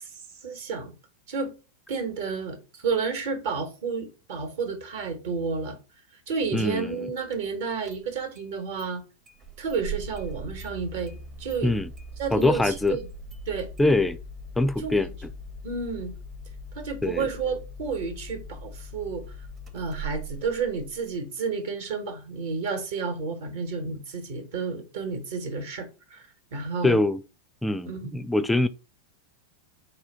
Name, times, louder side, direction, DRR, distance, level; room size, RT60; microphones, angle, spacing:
voice 1, 0.4-0.9 1.3-1.5 1.9-2.6 2.8-5.8 6.3-9.0 9.6-11.1 11.4-11.7 12.2-13.1 13.5-13.7 14.8-15.0 15.6-16.1 16.7-19.2 19.7-27.0 27.9-28.2, right 5 dB, 55° right, 1.1 m, -31 dB
voice 2, 6.5-7.0 11.6-11.9 12.3-13.0 13.8-14.2 14.6-15.3 17.0-17.3 26.8-27.2 27.6-28.7, left 2 dB, 5° left, 0.3 m, -23 dB
Engine starting, 7.3-7.4 7.8-8.5 8.8-8.9 9.3-21.2, right 2 dB, 25° right, 0.8 m, -41 dB
4.8 x 2.3 x 3.9 m
figure-of-eight pair, 90°, 0 cm